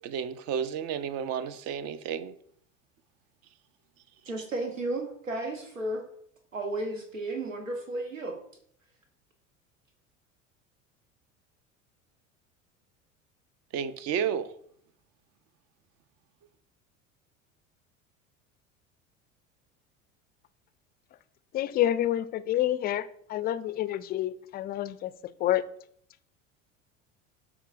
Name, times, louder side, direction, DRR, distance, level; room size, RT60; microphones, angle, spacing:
voice 1, 0.0-2.3 13.7-14.5, right 7 dB, 40° right, 0.7 m, -32 dB
voice 2, 4.2-6.1 6.5-8.4, right 2 dB, 85° right, 0.9 m, -33 dB
voice 3, 21.5-25.1 25.4-25.6, left 12 dB, 25° left, 0.4 m, -28 dB
12.5 x 4.8 x 2.5 m
figure-of-eight pair, 70°, 38 cm